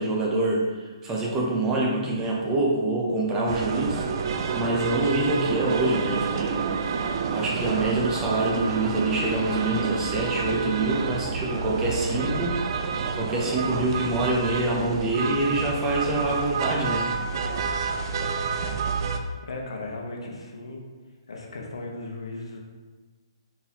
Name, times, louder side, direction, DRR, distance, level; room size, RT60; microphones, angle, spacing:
voice 1, 0.0-6.6 6.9-17.1 18.5-18.6, right 2 dB, 15° right, -3 dB, 0.8 m, -26 dB
sound 1, 3.5-19.2, right 5 dB, 50° right, 0.4 m, -29 dB
voice 2, 19.4-20.8 21.3-22.6, left 2 dB, 80° left, 0 dB, 0.9 m, -36 dB
4.3 x 3.9 x 2.9 m, 1.3 s
hypercardioid pair, 145°, 3 cm